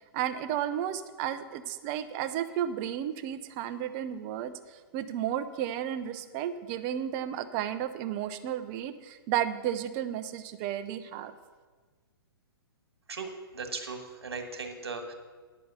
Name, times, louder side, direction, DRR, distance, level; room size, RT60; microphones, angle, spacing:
voice 1, 0.1-11.3, right 10 dB, 30° right, 11 dB, 0.7 m, -33 dB
voice 2, 13.1-15.1, right 4 dB, 80° right, 5 dB, 1.7 m, -38 dB
10.0 x 6.4 x 6.9 m, 1.4 s
hypercardioid pair, 130°, 13 cm